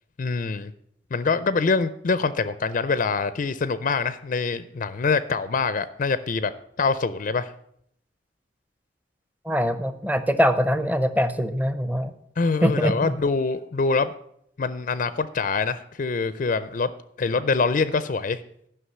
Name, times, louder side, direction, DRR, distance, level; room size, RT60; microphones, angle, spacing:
voice 1, 0.2-0.7 1.1-6.5 6.8-7.5 12.4-14.1 14.6-16.9 17.2-18.4, left 4 dB, 40° left, 14 dB, 0.4 m, -24 dB
voice 2, 9.4-12.1 12.6-13.2, equal, 10° right, 10 dB, 0.6 m, -23 dB
11.0 x 5.9 x 7.8 m, 0.72 s
head